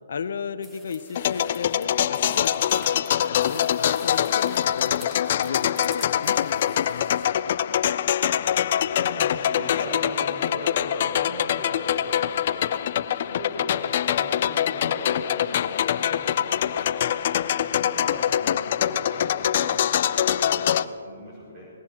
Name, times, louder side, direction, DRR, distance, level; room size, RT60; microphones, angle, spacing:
voice 1, 0.1-3.0 3.3-7.5, left 6 dB, 70° left, 12 dB, 0.7 m, -35 dB
sound 1, 0.6-7.3, equal, 5° right, 1.3 m, -46 dB
sound 2, 1.2-20.9, left 10 dB, 50° left, 0.4 m, -24 dB
voice 2, 8.3-12.8 13.1-17.1 17.4-21.7, equal, 25° right, -8 dB, 4.6 m, -39 dB
21.0 x 19.0 x 2.9 m, 2.7 s
hypercardioid pair, 155°, 0 cm